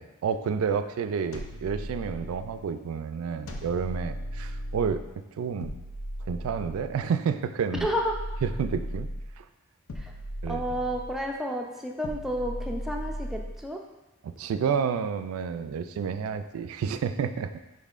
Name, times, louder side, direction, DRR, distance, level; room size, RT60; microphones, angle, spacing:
voice 1, 0.0-5.0 5.4-5.7 6.3-7.9 8.4-9.1 9.4-9.5 10.4-10.6 14.2-17.5, right 6 dB, 90° right, 11 dB, 0.3 m, -30 dB
sound 1, 1.3-2.6 3.5-5.1 5.6-7.0 7.7-9.4 9.9-11.3 12.0-13.6, equal, 80° left, 0.6 m, -37 dB
voice 2, 7.8-8.2 10.0-10.1 10.5-13.8, equal, ahead, 0 dB, 0.4 m, -31 dB
5.4 x 4.0 x 2.4 m, 1.0 s
head